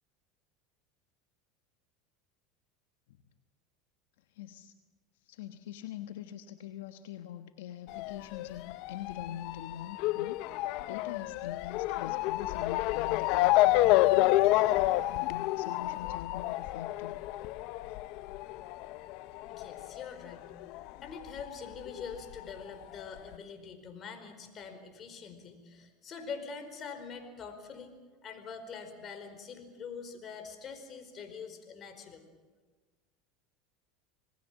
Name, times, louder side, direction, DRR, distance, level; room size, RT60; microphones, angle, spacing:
voice 1, 4.3-4.7 5.2-14.4 15.1-17.1, left 11 dB, 80° left, 9 dB, 1.2 m, -44 dB
Motor vehicle (road) / Siren, 7.9-20.9 21.2-22.3 23.0-23.1 23.3-23.4, left 17 dB, 65° left, 0.7 m, -29 dB
voice 2, 19.5-20.5 21.0-27.9 28.2-32.2, left 5 dB, 40° left, 8 dB, 4.8 m, -44 dB
27.5 x 19.5 x 7.6 m, 1.4 s
supercardioid pair, 105°, 0 cm